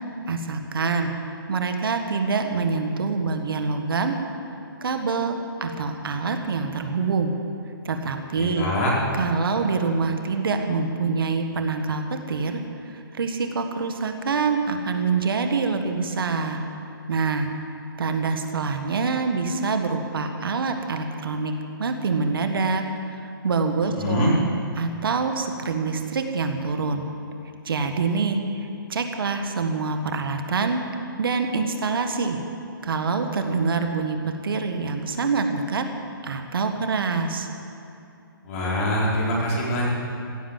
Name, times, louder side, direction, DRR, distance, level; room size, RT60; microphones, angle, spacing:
voice 1, 0.3-1.1 1.5-4.2 4.8-7.3 7.9-8.7 9.1-16.6 17.1-17.5 18.0-21.5 21.8-24.4 24.8-27.0 27.6-28.4 28.9-30.8 31.2-32.4 32.8-35.9 36.2-37.5, right 4 dB, 70° right, 6 dB, 1.7 m, -25 dB
voice 2, 8.3-9.0 24.0-24.3 38.4-39.9, left 1 dB, 35° left, -5 dB, 4.8 m, -24 dB
16.0 x 11.5 x 7.5 m, 2.7 s
hypercardioid pair, 160°, 12 cm